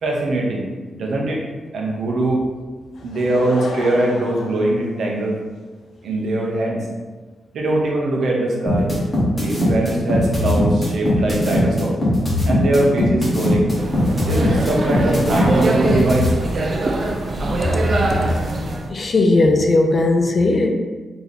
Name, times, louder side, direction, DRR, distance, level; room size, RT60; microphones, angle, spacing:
voice 1, 0.0-1.5 1.7-2.4 3.0-5.4 6.0-6.8 7.5-8.9 9.4-12.0 12.4-13.7 14.3-16.3, right 1 dB, 65° right, -1 dB, 0.8 m, -21 dB
Laughter / Crowd, 2.9-5.6 6.3-6.4, left 3 dB, 90° left, 0.5 m, -33 dB
sound 1, 8.7-16.3, left 1 dB, 10° left, 1.2 m, -19 dB
sound 2, 13.8-18.9, right 2 dB, 40° right, 0.5 m, -23 dB
voice 2, 18.9-20.7, left 2 dB, 35° left, 4 dB, 0.4 m, -17 dB
3.3 x 2.9 x 3.9 m, 1.3 s
wide cardioid pair, 135°, 0 cm